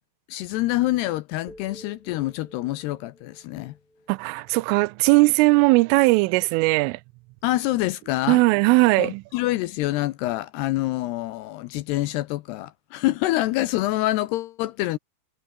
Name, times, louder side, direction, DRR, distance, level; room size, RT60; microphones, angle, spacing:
voice 1, 0.3-3.8 7.4-8.4 9.0-15.0, left 17 dB, 85° left, 2.3 m, -26 dB
sound 1, 1.5-5.6, equal, ahead, 5.3 m, -52 dB
voice 2, 4.1-7.0 8.3-9.2, right 24 dB, 90° right, 3.2 m, -19 dB
omnidirectional pair, 5.7 m